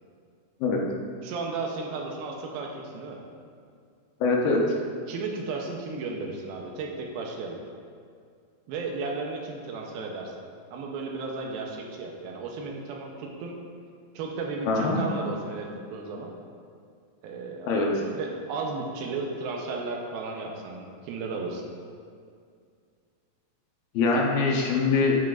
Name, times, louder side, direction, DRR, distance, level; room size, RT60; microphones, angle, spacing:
voice 1, 1.2-3.2 5.1-7.6 8.7-10.3 10.7-13.6 14.1-16.3 17.2-21.7, right 3 dB, 85° right, 1 dB, 2.7 m, -34 dB
voice 2, 4.2-4.6 14.7-15.0 17.7-17.9 23.9-25.2, left 3 dB, 75° left, -1 dB, 2.5 m, -23 dB
9.3 x 8.7 x 2.5 m, 2.2 s
omnidirectional pair, 4.2 m